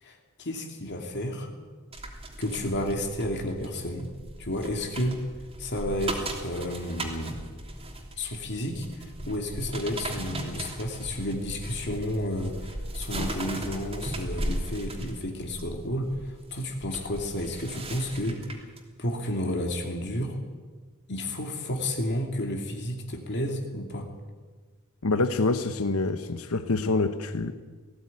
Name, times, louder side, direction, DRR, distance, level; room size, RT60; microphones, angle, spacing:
voice 1, 0.0-1.5 2.4-4.1 4.4-5.2 5.6-7.4 8.2-12.5 12.9-18.4 19.0-20.4 21.1-24.1, left 1 dB, 50° left, 2 dB, 2.6 m, -31 dB
sound 1, 1.9-18.8 19.2-19.5, right 1 dB, 25° right, 3.1 m, -37 dB
voice 2, 25.0-27.5, left 3 dB, 70° left, 10 dB, 1.0 m, -26 dB
18.5 x 16.0 x 9.6 m, 1.4 s
head